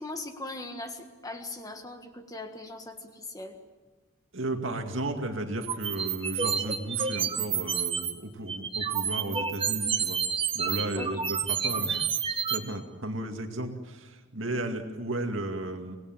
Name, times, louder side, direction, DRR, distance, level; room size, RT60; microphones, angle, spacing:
voice 1, 0.0-3.6 10.9-11.2, left 2 dB, 15° left, 6 dB, 1.6 m, -40 dB
voice 2, 4.3-10.2 10.5-16.0, right 1 dB, 65° right, 4 dB, 2.3 m, -34 dB
sound 1, 5.6-8.1 8.5-12.6, right 7 dB, 25° right, 1.1 m, -29 dB
25.0 x 19.0 x 7.4 m, 1.3 s
head